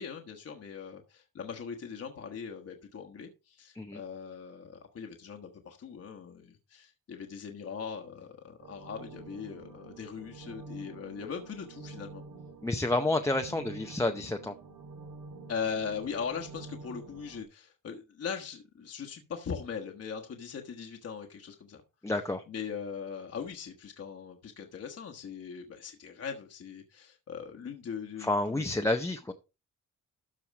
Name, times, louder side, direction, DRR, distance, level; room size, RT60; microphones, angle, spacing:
voice 1, 0.0-12.2 15.5-21.8 22.5-28.6, left 6 dB, 50° left, 3 dB, 1.3 m, -40 dB
sound 1, 8.6-17.4, right 3 dB, 70° right, 2.0 m, -48 dB
voice 2, 12.6-14.5 22.0-22.4 28.2-29.3, left 2 dB, 10° left, 4 dB, 0.6 m, -29 dB
13.0 x 4.7 x 4.7 m, 0.29 s
wide cardioid pair, 155°, 32 cm